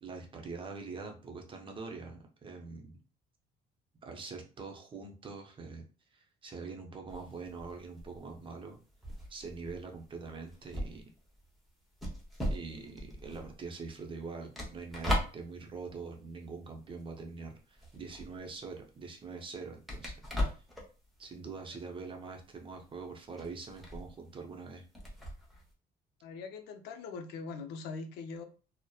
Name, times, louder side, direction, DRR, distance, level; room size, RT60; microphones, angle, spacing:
voice 1, 0.0-3.0 4.0-5.8 6.1-8.8 9.3-11.0 12.5-20.1 20.5-20.6 21.2-24.8, right 4 dB, 30° right, 2 dB, 0.6 m, -44 dB
sound 1, 7.1-17.3 17.6-25.7, equal, ahead, 0.8 m, -39 dB
voice 2, 26.2-28.4, left 4 dB, 80° left, 7 dB, 0.5 m, -42 dB
2.8 x 2.0 x 2.2 m, 0.35 s
cardioid pair, 110°, 17 cm